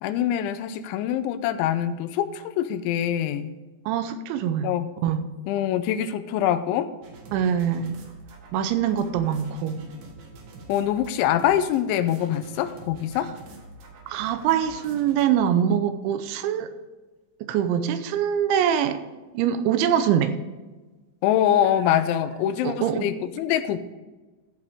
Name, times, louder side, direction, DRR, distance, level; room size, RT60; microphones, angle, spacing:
voice 1, 0.0-3.5 4.6-4.9 5.5-6.9 10.7-13.3 21.2-23.9, left 10 dB, 85° left, 11 dB, 3.1 m, -24 dB
voice 2, 3.9-4.7 5.0-5.3 7.3-8.0 8.5-9.9 14.1-16.7 17.4-19.0 19.3-20.3 22.6-23.1, right 9 dB, 80° right, 10 dB, 3.1 m, -24 dB
sound 1, 7.0-15.3, right 2 dB, 60° right, 3.1 m, -46 dB
14.0 x 7.9 x 3.6 m, 1.2 s
omnidirectional pair, 5.4 m